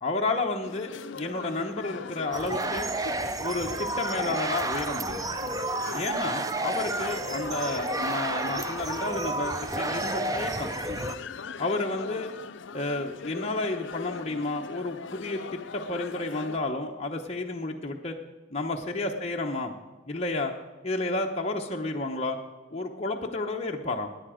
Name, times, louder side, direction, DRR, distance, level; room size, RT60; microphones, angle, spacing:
voice 1, 0.0-2.9 3.4-5.3 5.9-10.7 11.6-12.3 12.7-18.1 18.5-19.7 20.1-20.5 20.8-22.4 22.7-24.1, left 2 dB, 30° left, 1 dB, 0.8 m, -31 dB
sound 1, 0.6-16.6, left 5 dB, 65° left, 0.5 m, -40 dB
sound 2, 2.3-11.2, right 2 dB, 15° right, 0.4 m, -31 dB
18.0 x 9.9 x 5.0 m, 1.2 s
head